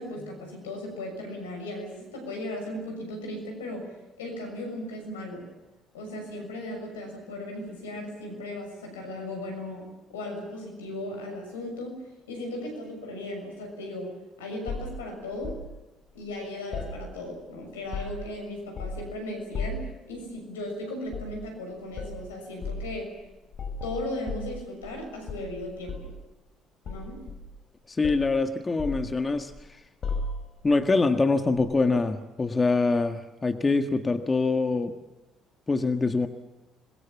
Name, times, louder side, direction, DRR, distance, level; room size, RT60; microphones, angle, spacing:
voice 1, 0.0-3.8 4.2-5.4 5.9-12.0 12.3-14.1 14.4-15.6 16.1-23.2 23.8-26.1 26.8-27.2, left 1 dB, 90° left, 3 dB, 6.5 m, -37 dB
sound 1, 14.7-15.7 16.7-17.5 17.7-18.3 18.7-19.1 19.5-19.9 21.1-21.4 21.9-22.2 22.6-22.9 23.5-25.0 25.3-26.2 26.8-27.7 28.0-28.3 28.8-29.6 30.0-30.6 31.6-31.7, left 3 dB, 50° left, 5.1 m, -35 dB
voice 2, 27.9-29.5 30.6-34.9 35.7-36.3, left 3 dB, 30° left, 7 dB, 1.7 m, -24 dB
27.0 x 21.5 x 7.2 m, 1.0 s
hypercardioid pair, 50°, 0 cm